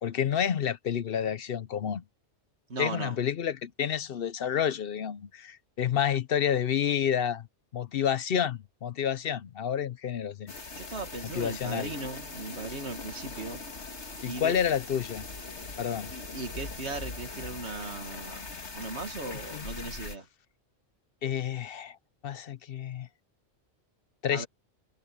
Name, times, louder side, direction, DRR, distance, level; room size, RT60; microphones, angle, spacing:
voice 1, 0.0-2.0 2.8-7.5 7.7-10.5 11.2-11.9 14.2-15.2 15.8-16.1 19.5-19.6 21.2-22.0 22.2-23.1 24.2-24.5, left 8 dB, 60° left, 0.8 m, -29 dB
voice 2, 2.7-3.2 10.8-13.6 14.2-14.6 16.1-18.5 18.7-20.3 24.3-24.5, right 3 dB, 80° right, 2.4 m, -38 dB
sound 1, 10.5-20.2, left 3 dB, 85° left, 2.4 m, -41 dB
omnidirectional pair, 1.1 m